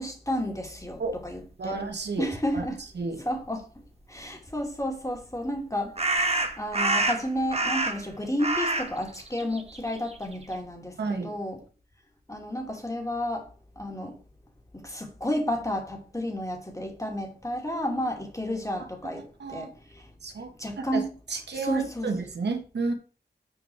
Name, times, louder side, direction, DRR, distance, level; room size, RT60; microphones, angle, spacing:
voice 1, 0.0-1.8 2.2-2.8 3.2-3.7 4.1-11.6 12.3-13.5 13.8-14.2 14.7-20.1 20.6-21.1 21.5-22.1, equal, 20° left, 2.6 m, -31 dB
voice 2, 1.6-2.2 2.5-2.7 2.9-3.2 11.0-11.3 19.4-19.7 20.2-20.5 20.9-21.0 21.3-22.9, right 4 dB, 85° right, 1.4 m, -31 dB
sound 1, 4.8-4.9 6.0-8.1 8.4-10.5, right 2 dB, 40° right, 1.3 m, -27 dB
7.6 x 5.3 x 4.7 m
cardioid pair, 40°, 17 cm